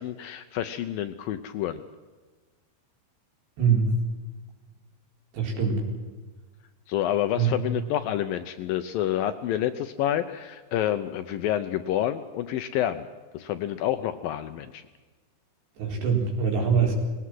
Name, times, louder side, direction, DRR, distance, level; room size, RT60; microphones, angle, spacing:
voice 1, 0.0-1.8 6.9-13.1 13.3-14.8, left 11 dB, 75° left, 10 dB, 2.2 m, -28 dB
voice 2, 3.6-3.9 5.3-5.8 7.4-7.6 15.8-16.9, right 6 dB, 85° right, 1 dB, 6.3 m, -23 dB
20.0 x 18.0 x 7.7 m, 1.3 s
omnidirectional pair, 4.8 m